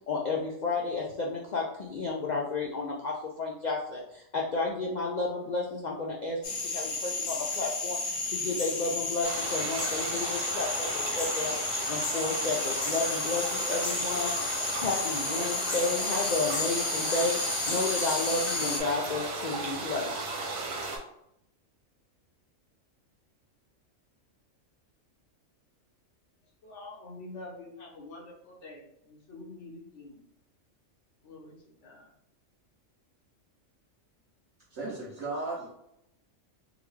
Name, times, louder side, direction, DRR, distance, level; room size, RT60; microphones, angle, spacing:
voice 1, 0.1-20.1, left 3 dB, 80° left, -2 dB, 0.4 m, -32 dB
sound 1, 6.4-18.8, left 3 dB, 50° left, 0.9 m, -32 dB
sound 2, 9.2-21.0, right 3 dB, 85° right, 1.2 m, -36 dB
voice 2, 26.6-30.2 31.2-31.5 31.8-32.1, left 2 dB, 65° left, -1 dB, 1.1 m, -46 dB
voice 3, 34.7-35.7, right 3 dB, 65° right, -6 dB, 1.1 m, -35 dB
3.7 x 2.2 x 3.1 m, 0.79 s
omnidirectional pair, 1.4 m